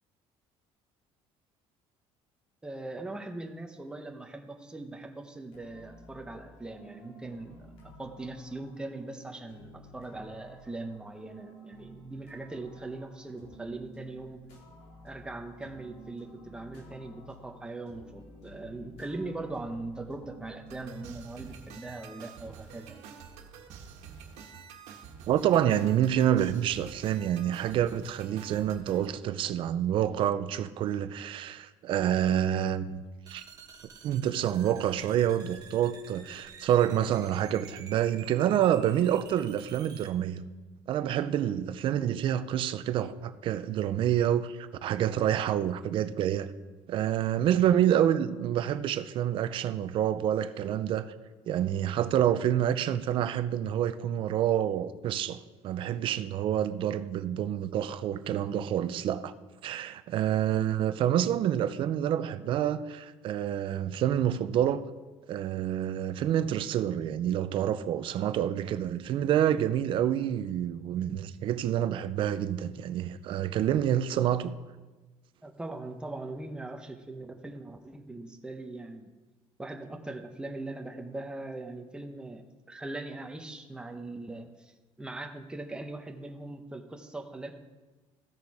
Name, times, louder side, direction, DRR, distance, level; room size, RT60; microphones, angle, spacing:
voice 1, 2.6-14.5 15.0-23.0 75.4-79.1 79.6-87.5, right 2 dB, 10° right, 0.9 m, -40 dB
sound 1, 5.5-21.1, right 1 dB, 65° left, 2.9 m, -52 dB
sound 2, 20.7-29.1, right 6 dB, 80° right, 1.5 m, -48 dB
voice 2, 25.3-33.0 33.3-33.4 34.0-40.4 40.9-46.5 46.9-51.1 51.5-59.3 59.6-64.8 65.3-74.5, right 10 dB, 50° right, 0.6 m, -28 dB
sound 3, 33.3-40.1, right 6 dB, 35° right, 1.2 m, -50 dB
15.0 x 6.7 x 4.8 m
cardioid pair, 155°, 11 cm